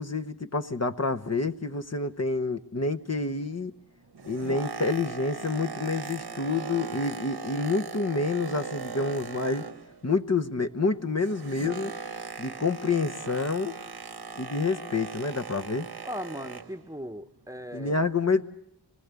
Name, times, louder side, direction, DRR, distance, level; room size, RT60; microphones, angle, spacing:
voice 1, 0.0-3.7 4.2-9.7 10.0-11.9 12.4-13.8 14.4-15.9 17.7-18.4, left 3 dB, 40° left, 7 dB, 0.9 m, -28 dB
Boat Water vehicle, 4.0-10.1 10.4-16.8 17.5-17.6, right 5 dB, 70° right, 1.2 m, -39 dB
voice 2, 16.0-18.0, equal, 10° right, 8 dB, 1.0 m, -38 dB
25.5 x 20.0 x 8.2 m, 0.75 s
wide cardioid pair, 65°, 40 cm